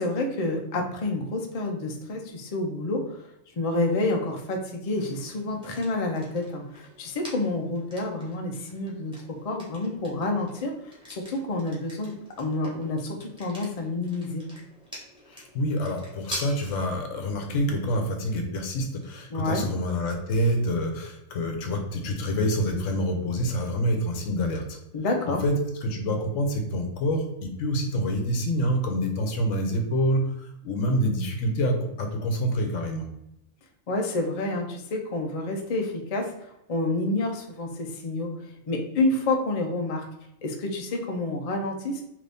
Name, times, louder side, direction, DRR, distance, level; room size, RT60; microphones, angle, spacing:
voice 1, 0.0-3.2 3.6-12.1 12.4-14.5 19.3-19.7 24.9-25.4 33.9-36.3 36.7-40.1 40.4-42.0, left 2 dB, 55° left, 2 dB, 0.4 m, -29 dB
sound 1, 4.9-22.7, equal, 5° right, 0.9 m, -47 dB
voice 2, 15.3-24.8 25.3-33.1, equal, 75° left, 3 dB, 1.0 m, -27 dB
3.1 x 2.6 x 3.3 m, 0.82 s
omnidirectional pair, 1.4 m